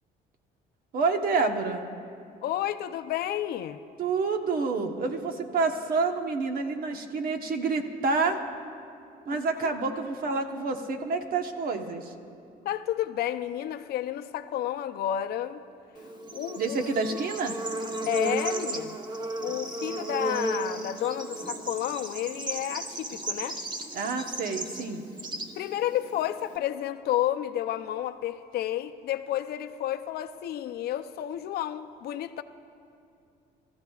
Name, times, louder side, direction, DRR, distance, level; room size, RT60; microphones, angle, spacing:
voice 1, 0.9-1.8 4.0-8.4 9.2-12.1 16.6-17.5 23.9-25.0, right 4 dB, 60° right, 1.1 m, -28 dB
voice 2, 2.4-3.8 9.3-9.7 12.6-15.6 16.3-16.8 17.1-17.2 18.1-19.0 19.4-23.6 25.6-32.4, left 12 dB, 70° left, 0.6 m, -31 dB
Bird / Insect, 16.0-26.6, right 2 dB, 25° right, 1.1 m, -35 dB
25.5 x 14.0 x 2.4 m
cardioid pair, 110°, 17 cm